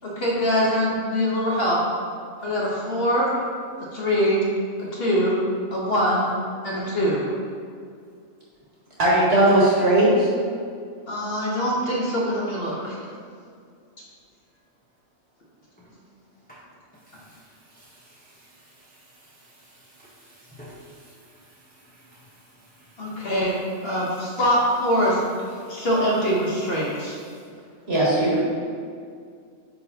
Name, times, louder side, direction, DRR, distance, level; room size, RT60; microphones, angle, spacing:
voice 1, 0.0-1.8 2.4-3.3 3.9-4.4 4.8-5.4 5.7-6.2 6.6-7.2 11.1-13.1 23.0-25.2 25.5-27.1, equal, 50° left, -5 dB, 1.2 m, -23 dB
voice 2, 9.0-10.3 27.9-28.4, right 1 dB, 50° right, -7 dB, 1.8 m, -18 dB
voice 3, 17.1-23.3 25.6-25.9 27.3-27.4, equal, 10° left, -8 dB, 0.7 m, -52 dB
9.2 x 3.8 x 2.8 m, 2.2 s
omnidirectional pair, 1.4 m